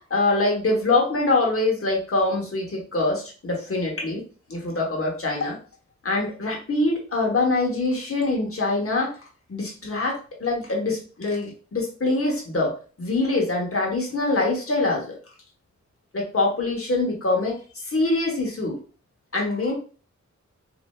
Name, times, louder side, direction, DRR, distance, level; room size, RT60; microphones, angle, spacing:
voice 1, 0.1-4.2 4.5-5.6 6.0-9.1 9.5-12.7 13.0-15.1 16.1-18.8 19.3-19.7, left 2 dB, 50° left, -1 dB, 1.0 m, -24 dB
3.1 x 2.4 x 2.2 m, 0.38 s
wide cardioid pair, 90°, 30 cm